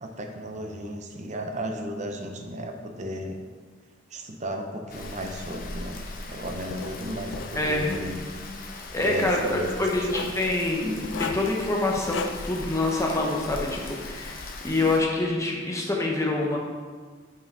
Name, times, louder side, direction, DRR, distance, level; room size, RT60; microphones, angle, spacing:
voice 1, 0.0-3.4 4.1-6.0 6.3-8.2 9.0-9.7 10.2-10.3, equal, 40° right, 4 dB, 0.7 m, -34 dB
Rain, 4.9-15.0, left 2 dB, 50° left, 0.7 m, -39 dB
Writing, 6.7-6.9 7.3-8.1 9.1-9.5 10.0-10.4 11.0-11.5 12.0-12.3, left 6 dB, 75° left, 0.4 m, -35 dB
voice 2, 7.5-8.0 8.9-16.6, left 2 dB, 15° left, -1 dB, 0.9 m, -26 dB
5.6 x 5.0 x 4.7 m, 1.6 s
head